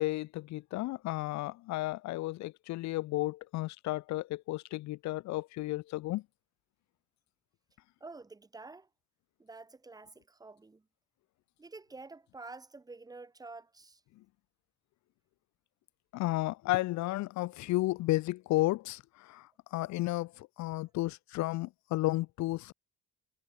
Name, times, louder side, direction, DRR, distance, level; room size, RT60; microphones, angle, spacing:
voice 1, 0.0-6.2 16.1-22.7, left 18 dB, 70° left, 0.5 m, -33 dB
voice 2, 8.0-8.9 9.4-10.8 11.6-14.0, right 3 dB, 15° right, 1.0 m, -49 dB
cardioid pair, 145°, 30 cm